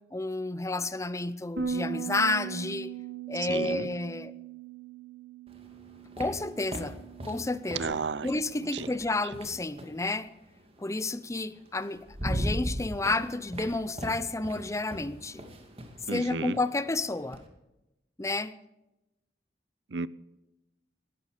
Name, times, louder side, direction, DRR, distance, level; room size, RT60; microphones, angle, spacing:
voice 1, 0.1-2.9 3.3-4.3 6.2-7.0 7.2-10.3 10.8-15.5 16.1-17.4 18.2-18.5, left 2 dB, 15° left, 0.6 m, -31 dB
Bass guitar, 1.6-7.8, right 6 dB, 70° right, 2.6 m, -39 dB
voice 2, 3.5-3.9 7.8-8.3 8.7-8.9 16.1-16.6 19.9-20.1, right 4 dB, 85° right, 0.7 m, -32 dB
sound 1, 5.5-10.0 11.3-11.4 11.8-17.5, equal, 35° right, 2.5 m, -38 dB
18.5 x 13.5 x 5.0 m
head